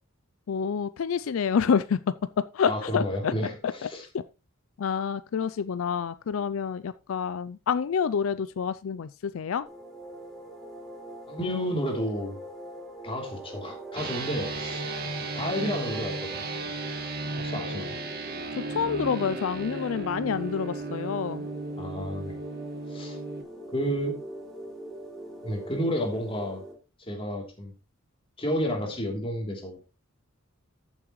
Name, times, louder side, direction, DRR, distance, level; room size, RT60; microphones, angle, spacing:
voice 1, 0.5-2.1 2.5-3.3 3.6-3.9 4.8-9.7 18.5-21.5, left 6 dB, 75° left, 0.4 m, -28 dB
voice 2, 2.6-3.5 3.8-4.0 11.3-12.3 13.0-14.9 15.3-16.5 17.4-18.0 21.8-22.4 22.9-23.2 23.7-24.2 25.4-26.6 27.0-27.7 28.4-29.8, equal, 25° left, 3.2 m, -31 dB
sound 1, 9.7-26.7, right 1 dB, ahead, 3.3 m, -42 dB
sound 2, 13.9-23.4, right 2 dB, 50° right, 2.1 m, -35 dB
14.0 x 7.4 x 3.1 m
head